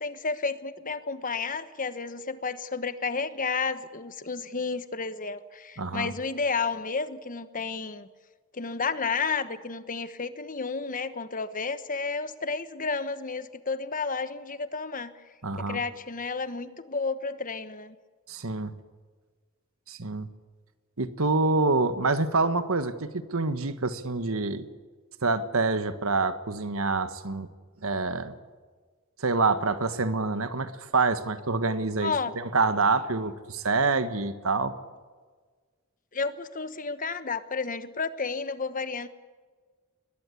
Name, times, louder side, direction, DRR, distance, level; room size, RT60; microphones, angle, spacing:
voice 1, 0.0-8.1 8.5-15.1 15.7-17.9 32.0-32.3 36.1-39.1, left 4 dB, 40° left, 12 dB, 1.2 m, -31 dB
voice 2, 5.8-6.1 15.4-15.8 18.3-18.7 19.9-20.3 21.0-24.7 25.2-27.5 27.8-28.3 29.2-34.7, right 3 dB, 80° right, 11 dB, 1.5 m, -26 dB
22.5 x 19.5 x 8.5 m, 1.5 s
head